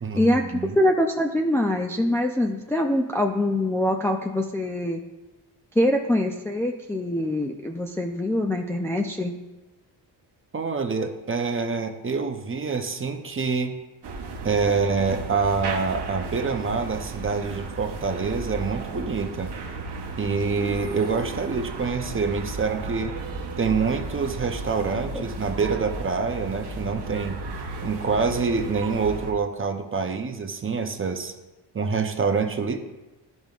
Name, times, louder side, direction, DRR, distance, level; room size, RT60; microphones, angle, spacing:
voice 1, 0.0-0.8 10.5-13.8 14.4-19.5 20.2-23.2 23.6-27.4 27.8-31.3 31.7-32.8, right 4 dB, 30° right, 6 dB, 0.7 m, -26 dB
voice 2, 0.8-5.0 5.8-9.3, left 1 dB, 5° left, 1 dB, 0.4 m, -24 dB
sound 1, 14.0-29.3, right 3 dB, 60° right, 0.9 m, -34 dB
11.0 x 5.3 x 2.4 m, 1.1 s
cardioid pair, 85°, 45 cm